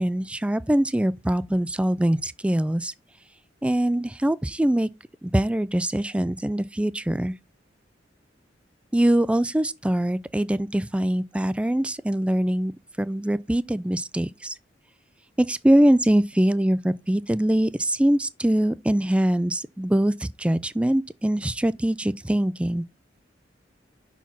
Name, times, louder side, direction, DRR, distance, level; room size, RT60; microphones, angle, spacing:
voice 1, 0.0-2.9 3.6-4.9 5.2-7.3 8.9-12.7 13.0-14.6 15.4-22.8, right 1 dB, 5° right, 0.3 m, -23 dB
5.7 x 4.6 x 6.0 m
head